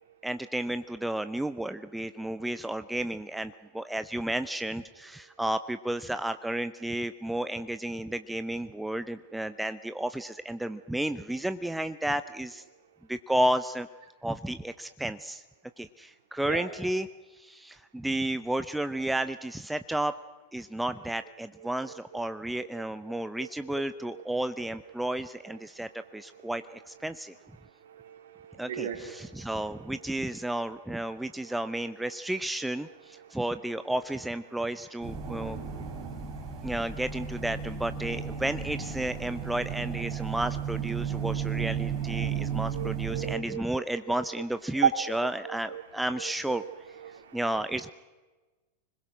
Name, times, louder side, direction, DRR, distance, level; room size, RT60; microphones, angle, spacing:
voice 1, 0.2-12.6 13.1-13.9 14.2-15.4 15.8-17.1 17.3-20.1 20.5-27.4 28.6-35.6 36.6-46.6 47.3-47.9, right 1 dB, 5° right, 11 dB, 0.7 m, -32 dB
voice 2, 23.1-23.5 24.1-24.2 26.3-26.5 27.9-29.3 42.7-43.8 44.8-45.8 46.2-46.7 47.0-47.4, right 8 dB, 60° right, 5 dB, 3.5 m, -34 dB
sound 1, 35.0-43.4, right 7 dB, 30° right, 3.2 m, -34 dB
26.0 x 21.0 x 6.3 m, 1.2 s
figure-of-eight pair, 90°, 0 cm